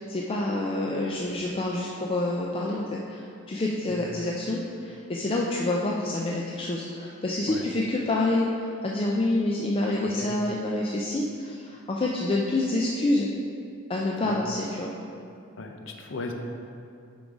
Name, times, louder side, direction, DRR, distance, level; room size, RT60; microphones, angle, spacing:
voice 1, 0.1-13.3 13.9-14.9, left 2 dB, 25° left, -2 dB, 0.4 m, -27 dB
voice 2, 10.0-10.4 14.2-14.4 15.6-16.3, left 3 dB, 65° left, 4 dB, 0.6 m, -36 dB
7.1 x 3.9 x 4.8 m, 2.4 s
head